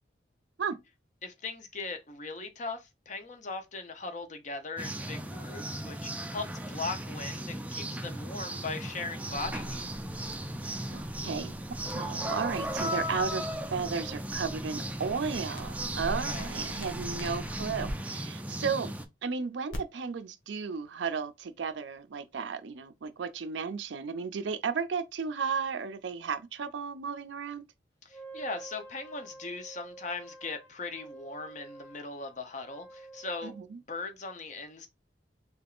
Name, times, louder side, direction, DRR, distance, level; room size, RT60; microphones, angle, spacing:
voice 1, 1.2-9.8 16.2-16.5 28.0-33.5 33.9-34.9, left 3 dB, 40° left, 0.6 m, -39 dB
sound 1, 4.8-19.1, right 1 dB, 10° right, 0.3 m, -36 dB
sound 2, 9.3-17.9 19.7-19.8, equal, 85° left, 1.0 m, -45 dB
voice 2, 10.9-11.5 11.9-18.9 19.2-27.6 33.4-33.8, right 5 dB, 70° right, 0.4 m, -34 dB
Wind instrument woodwind instrument, 28.1-33.7, right 3 dB, 15° left, 1.0 m, -49 dB
3.5 x 2.8 x 2.4 m
head